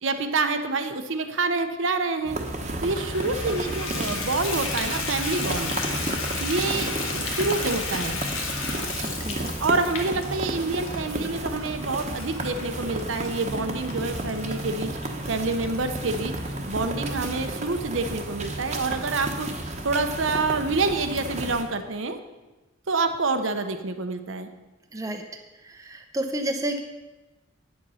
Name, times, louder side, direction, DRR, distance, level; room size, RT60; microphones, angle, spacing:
voice 1, 0.0-2.4 2.8-5.7 6.4-8.2 9.6-14.9 15.3-16.3 16.7-19.5 19.8-22.2 22.9-24.5, right 3 dB, 70° right, 7 dB, 0.8 m, -27 dB
sound 1, 2.2-21.6, right 1 dB, 35° right, 1.1 m, -32 dB
Water tap faucet / Bathtub (filling or washing), 2.8-17.2 17.8-17.9 18.4-18.5 18.8-18.9, left 4 dB, 80° left, 1.5 m, -34 dB
voice 2, 9.2-9.5 24.9-25.2 25.6-26.8, right 1 dB, 15° right, 4 dB, 0.7 m, -30 dB
9.4 x 7.7 x 5.6 m, 1.1 s
head